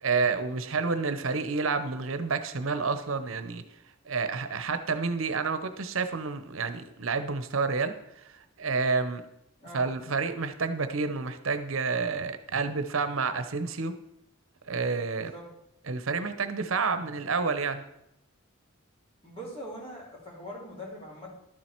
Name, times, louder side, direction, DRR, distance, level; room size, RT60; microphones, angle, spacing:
voice 1, 0.0-3.6 4.1-7.9 8.6-9.2 9.7-13.9 14.7-15.3 15.9-17.8, right 4 dB, 75° right, 10 dB, 0.8 m, -29 dB
voice 2, 15.1-15.5 19.2-21.3, equal, 25° left, -4 dB, 3.5 m, -42 dB
12.0 x 7.5 x 4.5 m, 0.83 s
head